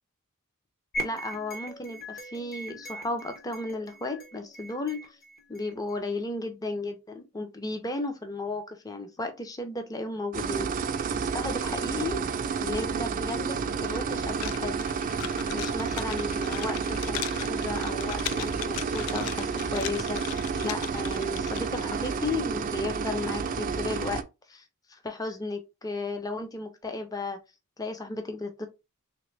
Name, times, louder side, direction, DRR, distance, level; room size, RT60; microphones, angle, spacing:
sound 1, 0.9-6.0, right 1 dB, 45° left, 0.9 m, -40 dB
voice 1, 1.0-5.2 5.5-10.7 11.3-12.2 12.6-14.9 15.5-24.2 24.5-24.6 24.9-27.4 27.8-28.7, left 2 dB, 15° left, 0.5 m, -34 dB
sound 2, 10.3-24.2, right 5 dB, 40° right, 0.3 m, -30 dB
sound 3, 14.4-21.9, left 11 dB, 85° left, 0.4 m, -39 dB
3.3 x 2.9 x 3.2 m
head